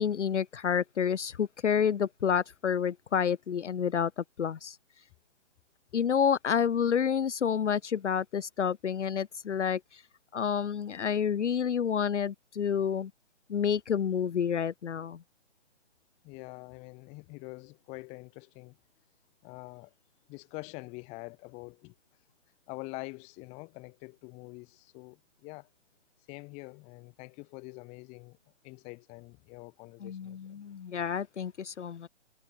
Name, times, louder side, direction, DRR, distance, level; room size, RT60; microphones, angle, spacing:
voice 1, 0.0-4.8 5.9-10.0 10.3-13.1 13.5-15.2 30.0-32.1, left 7 dB, 70° left, 0.8 m, -29 dB
voice 2, 16.2-18.8 19.4-19.9 20.3-22.0 22.7-25.7 26.3-28.4 28.6-30.6, left 27 dB, 15° left, 2.0 m, -45 dB
figure-of-eight pair, 145°, 37 cm